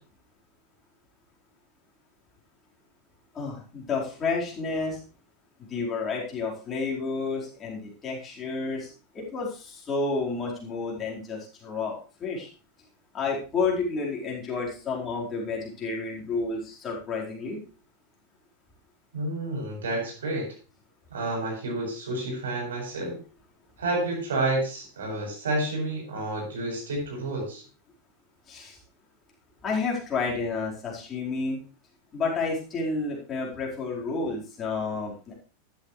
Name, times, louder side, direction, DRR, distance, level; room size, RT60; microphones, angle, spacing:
voice 1, 3.3-5.0 5.7-8.9 9.1-12.5 13.1-17.6 28.5-28.8 29.6-31.6 32.1-35.4, left 4 dB, 25° left, -3 dB, 4.6 m, -30 dB
voice 2, 19.1-20.5 21.1-23.2 23.8-27.6, right 2 dB, 65° right, -1 dB, 7.9 m, -30 dB
14.0 x 11.5 x 3.3 m, 0.37 s
figure-of-eight pair, 90°, 0 cm